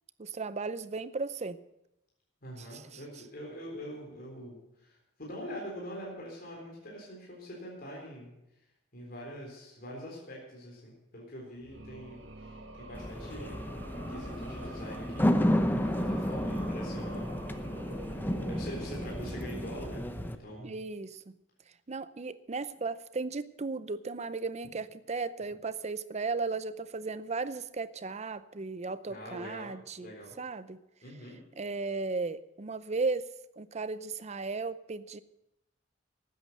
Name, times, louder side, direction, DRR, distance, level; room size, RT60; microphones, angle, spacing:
voice 1, 0.2-1.6 2.7-3.0 20.6-21.2 21.9-30.8 31.6-35.2, right 4 dB, 35° right, 14 dB, 0.6 m, -35 dB
voice 2, 2.4-8.3 8.9-13.6 14.1-15.3 15.5-17.7 18.0-18.2 18.5-20.7 29.1-30.3 31.0-31.4, equal, 50° left, -3 dB, 3.8 m, -44 dB
sound 1, 11.5-20.6, right 2 dB, 75° right, 1.8 m, -47 dB
sound 2, 12.9-20.4, equal, 10° left, 0.8 m, -32 dB
13.0 x 9.3 x 7.8 m, 0.89 s
head